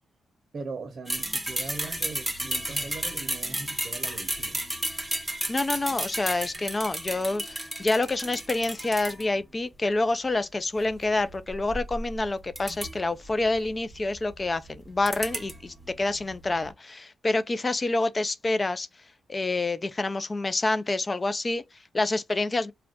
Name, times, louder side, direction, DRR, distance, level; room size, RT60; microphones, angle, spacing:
voice 1, 0.5-4.6, right 3 dB, 50° right, 0.7 m, -40 dB
sound 1, 1.1-9.5 10.7-16.7, right 1 dB, 5° right, 0.9 m, -33 dB
voice 2, 5.5-22.7, left 2 dB, 30° left, 0.4 m, -28 dB
2.4 x 2.2 x 3.5 m
cardioid pair, 85°, 0 cm